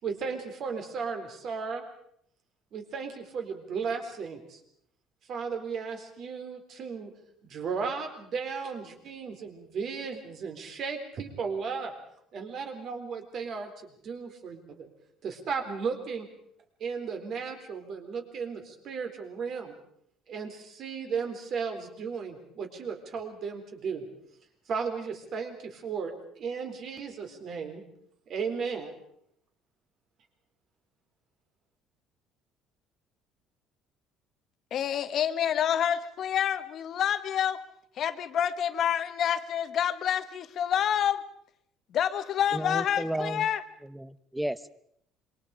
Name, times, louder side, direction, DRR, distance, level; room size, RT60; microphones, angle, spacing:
voice 1, 0.0-1.8 2.7-4.6 5.3-7.1 7.4-11.9 12.3-14.9 15.2-16.3 16.8-19.7 20.3-24.1 24.7-27.8 28.3-28.9, right 5 dB, 45° right, 5 dB, 3.9 m, -35 dB
voice 2, 34.7-37.6 38.0-41.2 41.9-43.6, left 9 dB, 45° left, 11 dB, 1.3 m, -28 dB
voice 3, 42.5-43.5 43.8-44.7, right 1 dB, 5° right, 15 dB, 0.8 m, -33 dB
27.0 x 24.0 x 5.0 m, 0.70 s
cardioid pair, 155°, 0 cm